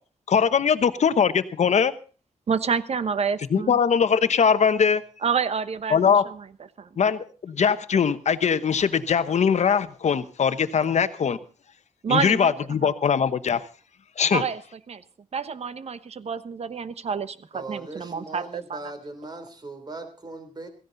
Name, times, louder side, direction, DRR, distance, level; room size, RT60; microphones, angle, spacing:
voice 1, 0.3-1.9 3.5-5.0 5.9-6.2 7.0-11.4 12.1-13.6 14.2-14.4, left 6 dB, 60° left, 1.1 m, -21 dB
voice 2, 2.5-3.8 5.2-6.4 6.8-6.9 12.0-12.5 12.8-12.9 14.3-14.6 14.9-15.0 15.3-18.8, right 6 dB, 55° right, 1.0 m, -28 dB
voice 3, 17.5-20.7, right 2 dB, 35° right, 3.2 m, -39 dB
16.5 x 15.0 x 4.0 m
wide cardioid pair, 105°, 13 cm